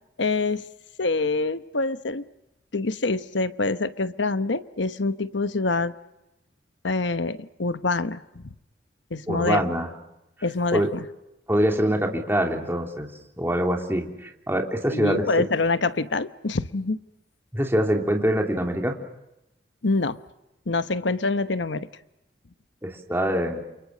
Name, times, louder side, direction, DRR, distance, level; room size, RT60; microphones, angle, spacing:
voice 1, 0.2-0.6 1.0-2.2 2.7-5.9 6.8-8.5 9.1-9.6 10.4-11.0 14.9-17.0 19.8-20.2 20.7-21.9, left 3 dB, 85° left, 12 dB, 1.0 m, -25 dB
voice 2, 9.3-9.9 10.7-10.9 11.5-13.1 13.4-15.5 17.5-18.9 22.8-23.6, equal, 15° right, 2 dB, 3.1 m, -24 dB
29.0 x 28.0 x 6.5 m, 0.91 s
head